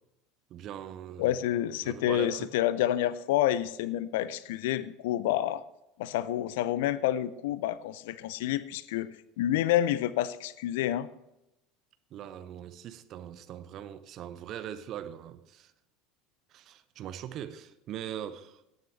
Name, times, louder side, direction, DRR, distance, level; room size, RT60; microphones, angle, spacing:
voice 1, 0.5-1.4 1.8-2.5 12.1-15.7 16.5-18.6, right 10 dB, 45° right, 0.9 m, -41 dB
voice 2, 1.2-5.6 6.0-11.1, left 13 dB, 65° left, 0.5 m, -29 dB
18.0 x 9.4 x 3.2 m
figure-of-eight pair, 70°, 0 cm